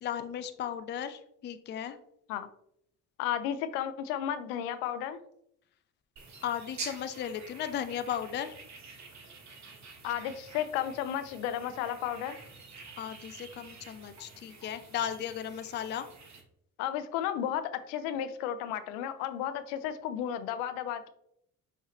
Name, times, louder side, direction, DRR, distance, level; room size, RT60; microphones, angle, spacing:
voice 1, 0.0-2.0 6.4-8.5 13.0-16.1, left 9 dB, 25° left, 10 dB, 0.4 m, -36 dB
voice 2, 3.2-5.2 10.0-12.4 16.8-21.1, left 10 dB, 75° left, 12 dB, 0.6 m, -33 dB
sound 1, 6.2-16.4, right 4 dB, 40° right, 1.1 m, -48 dB
5.7 x 2.7 x 3.0 m, 0.74 s
hypercardioid pair, 50°, 43 cm